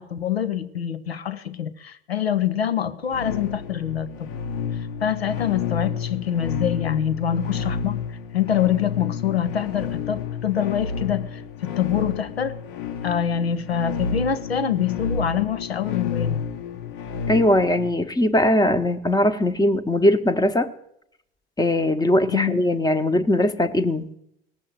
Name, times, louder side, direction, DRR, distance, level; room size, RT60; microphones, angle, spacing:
voice 1, 0.0-4.3 5.0-8.0 8.3-12.6 13.0-16.4 22.3-22.6, left 9 dB, 80° left, 0.8 m, -25 dB
sound 1, 3.1-17.9, left 6 dB, 60° left, 1.2 m, -30 dB
voice 2, 17.3-20.7 21.6-24.1, left 1 dB, 10° left, 1.0 m, -20 dB
18.0 x 7.6 x 9.1 m
figure-of-eight pair, 60°, 31 cm